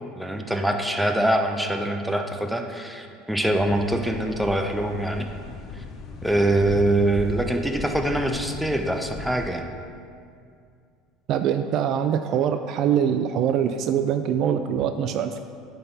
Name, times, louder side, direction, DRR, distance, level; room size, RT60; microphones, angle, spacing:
voice 1, 0.2-5.3 5.7-5.8 6.2-9.7, right 1 dB, ahead, 4 dB, 0.7 m, -24 dB
sound 1, 3.5-9.5, left 4 dB, 45° left, 0.6 m, -37 dB
voice 2, 11.3-15.4, right 8 dB, 55° right, 8 dB, 0.3 m, -23 dB
10.0 x 4.0 x 3.9 m, 2.3 s
hypercardioid pair, 75°, 0 cm